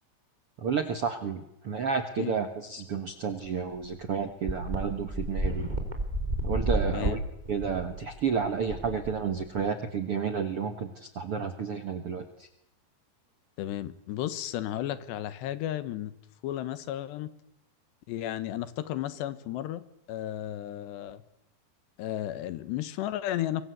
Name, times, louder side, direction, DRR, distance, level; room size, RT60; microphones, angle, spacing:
voice 1, 0.6-5.7 6.4-7.2 7.5-12.5, right 6 dB, 65° right, 8 dB, 1.4 m, -31 dB
sound 1, 3.4-3.5 3.8-3.9 4.5-9.6, right 1 dB, 10° right, 3.3 m, -31 dB
voice 2, 13.6-16.1 16.4-17.3 18.1-19.8 20.1-21.2 22.0-23.6, left 12 dB, 80° left, 14 dB, 3.4 m, -33 dB
25.0 x 23.0 x 8.2 m, 0.79 s
omnidirectional pair, 4.9 m